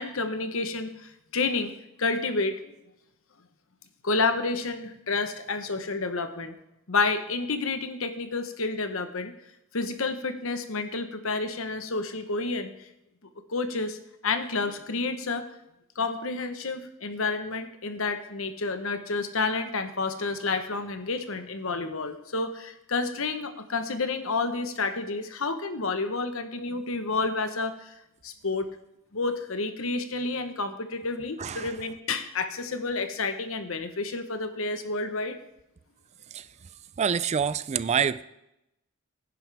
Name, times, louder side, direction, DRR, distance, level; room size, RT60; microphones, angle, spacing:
voice 1, 0.0-1.7 2.0-2.7 4.0-6.6 6.9-9.3 9.7-12.9 13.5-14.0 14.2-15.5 15.9-27.9 28.2-28.8 29.1-35.4, left 3 dB, 65° left, 9 dB, 1.1 m, -30 dB
voice 2, 31.4-31.8 36.3-36.5 37.0-38.2, right 7 dB, 30° right, 16 dB, 0.3 m, -26 dB
16.5 x 10.0 x 3.5 m, 0.85 s
head